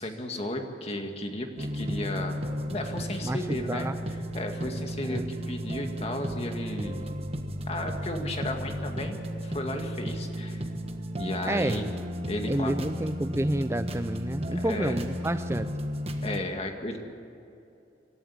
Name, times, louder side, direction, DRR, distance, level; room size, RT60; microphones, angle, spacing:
voice 1, 0.0-2.4 2.7-7.0 7.7-10.7 11.2-11.9 12.3-12.8 14.5-15.0 16.2-17.0, left 1 dB, 35° left, 4 dB, 2.1 m, -34 dB
sound 1, 1.6-16.4, equal, 35° right, 1.4 m, -34 dB
voice 2, 11.5-11.8 12.5-15.7, right 1 dB, 15° right, 10 dB, 0.4 m, -29 dB
26.0 x 12.5 x 8.8 m, 2.7 s
head